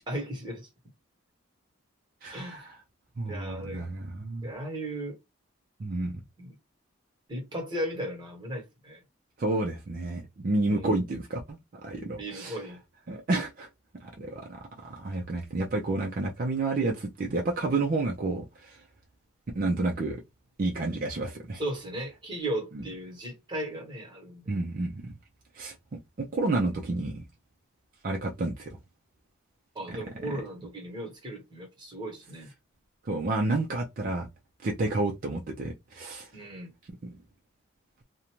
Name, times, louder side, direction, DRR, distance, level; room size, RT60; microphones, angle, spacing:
voice 1, 0.1-0.7 2.3-2.6 3.2-3.8 4.4-5.2 6.4-6.5 7.3-9.0 10.7-11.1 12.2-12.8 21.5-24.5 29.7-32.5 36.3-36.7, right 1 dB, 20° right, 1.1 m, -36 dB
voice 2, 2.2-2.7 3.2-4.5 5.8-6.2 9.4-12.6 13.1-13.7 14.0-18.8 19.5-20.2 20.6-21.6 24.5-25.1 25.5-25.7 26.2-27.2 28.0-28.8 29.9-30.0 33.0-34.3 34.6-36.3 37.0-37.1, right 2 dB, 45° right, 0.4 m, -30 dB
2.5 x 2.1 x 2.9 m
head